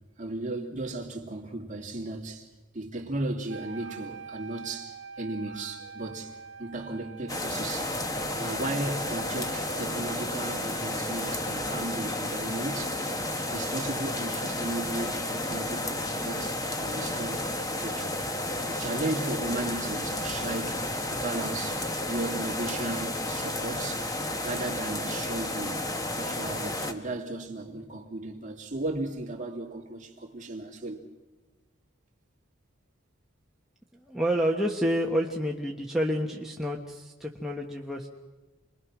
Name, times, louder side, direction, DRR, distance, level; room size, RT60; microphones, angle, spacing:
voice 1, 0.2-2.5 2.7-8.0 8.4-13.0 13.5-17.5 17.8-18.2 18.6-20.8 21.1-24.1 24.4-25.8 26.2-31.0, right 2 dB, 35° right, 2.8 m, -35 dB
Wind instrument woodwind instrument, 3.5-10.4, right 5 dB, 55° right, 1.7 m, -45 dB
sound 1, 7.3-26.9, left 1 dB, 15° left, 1.3 m, -32 dB
voice 2, 34.0-38.1, equal, ahead, 1.3 m, -29 dB
28.5 x 21.5 x 6.2 m
head